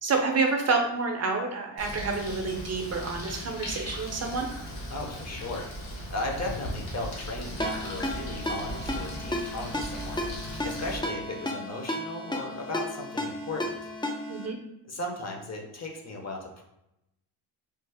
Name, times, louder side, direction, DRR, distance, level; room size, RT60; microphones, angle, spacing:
voice 1, 0.0-4.5 14.3-14.5, right 4 dB, 30° right, 2 dB, 0.6 m, -28 dB
Bird, 1.8-11.0, equal, 60° left, 1.1 m, -38 dB
voice 2, 4.9-10.2 10.6-13.8 14.9-16.6, left 2 dB, 35° left, 1 dB, 0.7 m, -36 dB
Ringtone, 7.6-14.5, left 1 dB, 10° left, 0.4 m, -34 dB
3.2 x 2.0 x 3.3 m, 0.86 s
cardioid pair, 90°, 50 cm